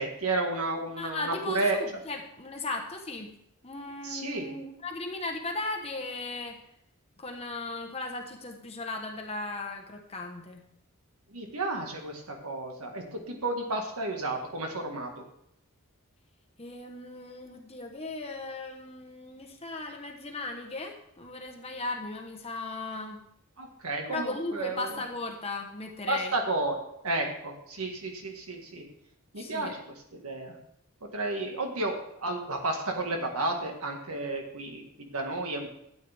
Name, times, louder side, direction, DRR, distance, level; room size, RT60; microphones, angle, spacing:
voice 1, 0.0-1.8 4.0-4.5 11.3-15.2 23.6-25.0 26.1-26.8 27.0-28.8 29.3-29.8 30.1-30.5 31.1-31.9 32.2-35.7, right 2 dB, 75° right, 3 dB, 1.7 m, -32 dB
voice 2, 1.0-3.3 3.6-6.6 7.2-10.6 16.6-23.2 24.1-26.3 29.4-29.7, left 2 dB, 25° left, 3 dB, 1.1 m, -37 dB
13.0 x 8.8 x 3.5 m, 0.76 s
head